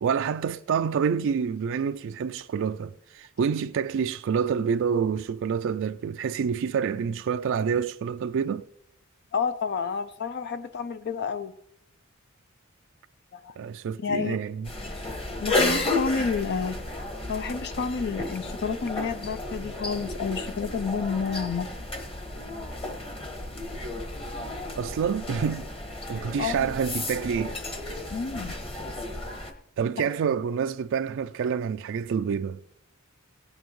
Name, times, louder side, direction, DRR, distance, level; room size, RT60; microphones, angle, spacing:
voice 1, 0.0-8.7 13.6-14.7 24.8-25.7 26.1-27.5 29.8-32.6, right 6 dB, 60° right, 0.3 m, -27 dB
voice 2, 9.3-11.5 13.3-13.5 14.0-14.4 15.4-17.0 17.3-21.7 26.0-26.7 28.1-28.6, left 5 dB, 55° left, 0.5 m, -30 dB
sound 1, 14.6-29.5, left 2 dB, 25° left, 1.4 m, -33 dB
18.0 x 9.0 x 3.1 m
head